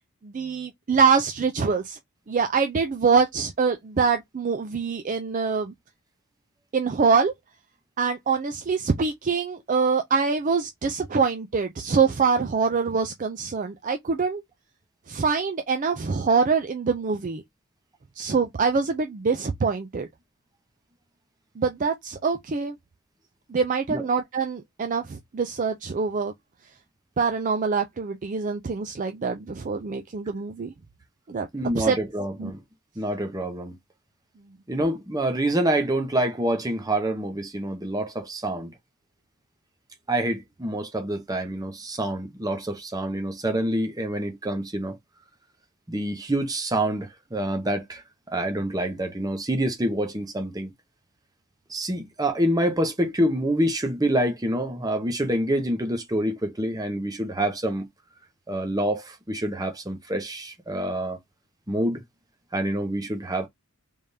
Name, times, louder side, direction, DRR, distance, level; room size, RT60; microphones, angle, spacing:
voice 1, 0.2-2.0 2.3-5.7 6.7-7.3 8.0-14.4 15.1-17.4 18.2-20.1 21.6-22.8 23.5-26.3 27.2-30.7 31.3-31.5 31.7-32.0 32.4-32.5, right 5 dB, 35° right, 0.4 m, -24 dB
voice 2, 31.5-32.6 33.0-33.8 34.7-38.7 40.1-45.0 45.9-48.0 48.3-50.7 51.7-57.9 58.5-61.2 61.7-62.0 62.5-63.5, right 1 dB, 15° right, 0.8 m, -27 dB
3.5 x 3.3 x 2.7 m
head